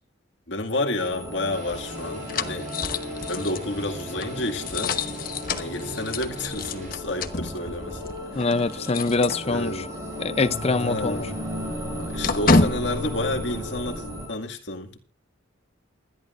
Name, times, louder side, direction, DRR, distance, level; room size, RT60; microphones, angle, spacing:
voice 1, 0.5-2.7 3.3-5.0 5.6-8.6 9.4-9.9 10.8-11.4 12.0-15.0, left 2 dB, 65° left, 2.1 m, -30 dB
sound 1, 1.0-14.3, left 1 dB, 15° right, 7.1 m, -35 dB
sound 2, 1.1-10.0 10.3-10.4 10.8-14.2, left 3 dB, 50° left, 1.1 m, -30 dB
sound 3, 1.5-6.9, right 1 dB, 45° right, 4.8 m, -43 dB
voice 2, 8.3-9.7 10.2-11.2, left 3 dB, 35° left, 0.6 m, -24 dB
28.0 x 11.0 x 2.6 m
head